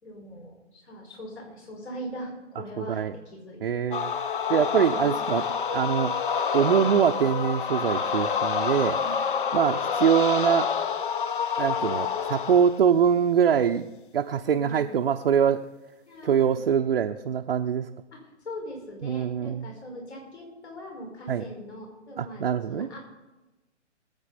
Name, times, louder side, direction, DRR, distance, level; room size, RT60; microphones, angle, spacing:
voice 1, 0.0-3.6 4.5-5.1 9.0-9.1 9.4-9.7 14.4-15.0 16.1-16.6 18.1-18.2 18.4-23.1, equal, 60° left, -1 dB, 5.6 m, -41 dB
voice 2, 2.8-3.1 3.6-4.1 4.5-5.4 5.7-6.1 6.5-9.0 9.5-10.7 11.6-13.9 14.1-15.7 16.2-17.9 19.0-19.7 21.3-21.4 22.2-22.9, right 8 dB, 50° right, 3 dB, 0.6 m, -23 dB
sound 1, 3.9-12.8, left 6 dB, 45° left, 0.7 m, -28 dB
20.5 x 8.8 x 4.2 m, 1.1 s
figure-of-eight pair, 130°, 37 cm